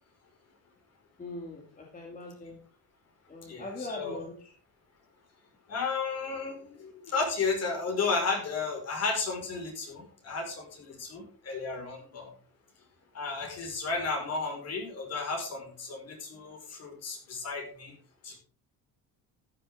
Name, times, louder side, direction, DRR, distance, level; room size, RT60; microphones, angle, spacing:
voice 1, 1.2-2.6 3.3-4.5, left 2 dB, 20° left, 0 dB, 2.4 m, -41 dB
voice 2, 3.4-4.2 5.7-12.3 13.1-18.0 18.2-18.4, left 4 dB, 40° left, 3 dB, 4.9 m, -33 dB
13.5 x 10.5 x 3.6 m, 0.42 s
cardioid pair, 155°, 39 cm